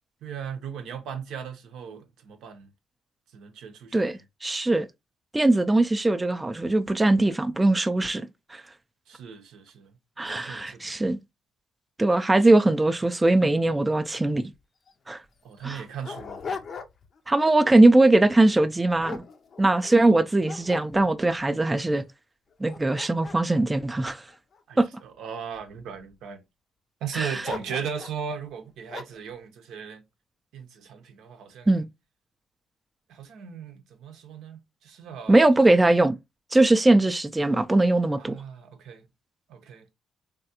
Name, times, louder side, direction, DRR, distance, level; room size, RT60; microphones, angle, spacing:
voice 1, 0.2-2.7 3.3-4.2 5.8-5.9 9.1-9.9 10.3-11.1 15.4-16.4 24.7-26.4 27.0-30.0 30.5-31.7 33.1-35.5 38.2-39.1 39.5-39.8, right 7 dB, 80° right, 0.6 m, -37 dB
voice 2, 3.9-4.9 5.3-8.6 10.2-11.2 12.0-14.5 15.1-15.2 15.6-15.8 17.3-19.2 19.6-22.0 22.6-24.2 24.8-24.9 27.1-27.4 31.7-31.9 35.3-36.2 36.5-38.4, right 2 dB, 15° right, 0.3 m, -21 dB
Dog, 14.5-14.6 14.9-15.0 15.6-17.2 17.6-17.9 18.5-20.0 20.4-21.4 22.0-22.1 22.5-24.9 25.5-26.1 27.4-28.2 28.9-29.3, left 5 dB, 50° left, 0.4 m, -40 dB
3.3 x 2.3 x 2.7 m
cardioid pair, 90°, 0 cm